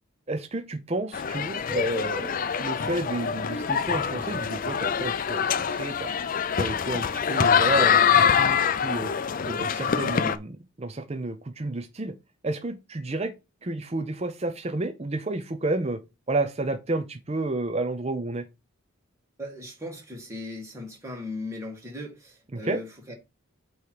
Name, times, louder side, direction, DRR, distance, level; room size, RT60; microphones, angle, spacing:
voice 1, 0.3-2.3 2.6-6.1 6.6-9.1 9.4-12.1 12.4-13.3 13.6-16.0 16.3-18.4 22.5-22.8, right 2 dB, 30° right, 0.6 m, -31 dB
sound 1, 1.1-10.4, left 7 dB, 40° left, 0.4 m, -24 dB
voice 2, 19.4-23.1, left 1 dB, 15° right, 2.0 m, -38 dB
8.3 x 3.1 x 4.8 m
head